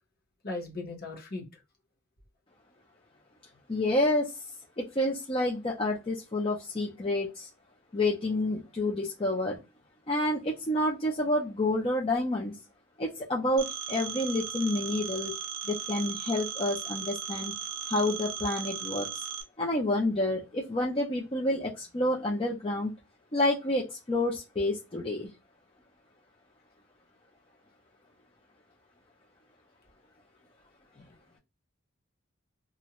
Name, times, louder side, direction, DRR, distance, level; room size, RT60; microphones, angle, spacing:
voice 1, 0.4-1.4, left 2 dB, 50° left, 1.0 m, -37 dB
voice 2, 3.7-4.3 4.8-7.5 7.9-9.6 10.1-12.6 13.0-15.3 15.7-17.5 17.9-19.1 19.6-22.9 23.3-25.3, left 1 dB, 25° left, 0.5 m, -29 dB
Telephone, 13.6-19.4, right 8 dB, 80° right, 0.5 m, -37 dB
2.5 x 2.2 x 2.9 m
head